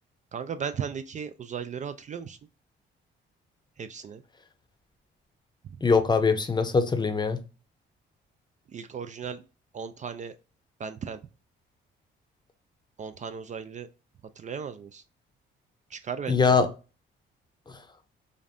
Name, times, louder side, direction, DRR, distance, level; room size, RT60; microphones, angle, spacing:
voice 1, 0.3-2.4 3.8-4.2 5.6-5.8 8.7-9.4 9.7-10.3 10.8-11.2 13.0-13.9 14.4-15.0 15.9-16.6, right 7 dB, 40° right, 0.4 m, -36 dB
voice 2, 5.8-7.4 16.3-16.7 17.7-17.8, left 5 dB, 20° left, 0.6 m, -22 dB
5.1 x 2.5 x 2.6 m
cardioid pair, 90°, 20 cm